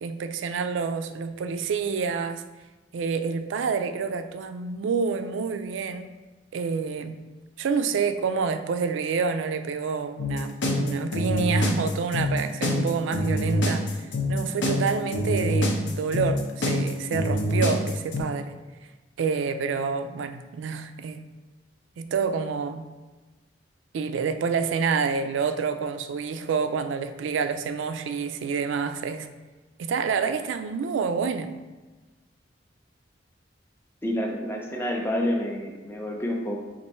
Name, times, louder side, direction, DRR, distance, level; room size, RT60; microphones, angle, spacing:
voice 1, 0.0-2.4 2.9-6.1 6.5-7.2 7.6-13.8 14.3-18.6 19.2-21.2 22.0-22.8 23.9-29.3 29.8-31.5, right 5 dB, 85° right, 9 dB, 0.3 m, -28 dB
sound 1, 10.2-18.2, left 1 dB, 75° left, 0.6 m, -25 dB
voice 2, 34.0-36.7, left 1 dB, 10° left, 1 dB, 0.4 m, -28 dB
4.3 x 2.6 x 4.2 m, 1.2 s
head